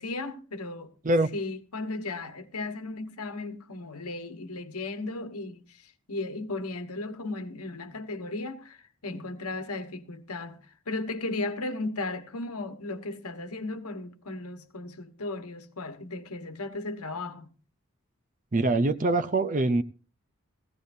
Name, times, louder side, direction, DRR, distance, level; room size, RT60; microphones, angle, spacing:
voice 1, 0.0-0.9 1.3-17.5, left 2 dB, 90° left, 1.4 m, -36 dB
voice 2, 18.5-19.8, right 2 dB, 35° right, 0.6 m, -24 dB
17.5 x 16.0 x 2.7 m
head